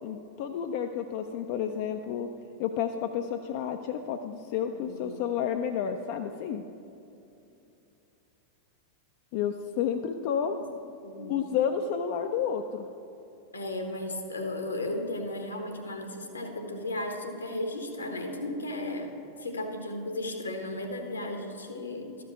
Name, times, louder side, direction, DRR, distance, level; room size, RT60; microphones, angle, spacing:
voice 1, 0.0-2.3 2.6-6.6 9.3-10.6 11.3-12.9, left 8 dB, 50° left, 6 dB, 0.4 m, -30 dB
voice 2, 4.7-5.2 11.0-11.4 13.5-19.1 19.4-22.2, left 1 dB, 75° left, 5 dB, 1.1 m, -35 dB
13.0 x 5.2 x 5.8 m, 2.8 s
figure-of-eight pair, 90°, 0 cm